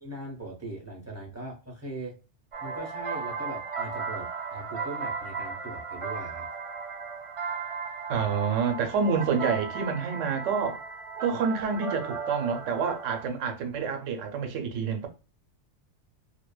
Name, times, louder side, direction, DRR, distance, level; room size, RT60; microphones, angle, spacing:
voice 1, 0.0-2.2 2.6-6.5, right 2 dB, 15° right, 0.6 m, -40 dB
sound 1, 2.5-13.3, right 5 dB, 55° right, 0.3 m, -36 dB
voice 2, 8.1-10.8 11.2-15.1, right 6 dB, 80° right, 1.0 m, -28 dB
2.6 x 2.1 x 2.2 m
omnidirectional pair, 1.3 m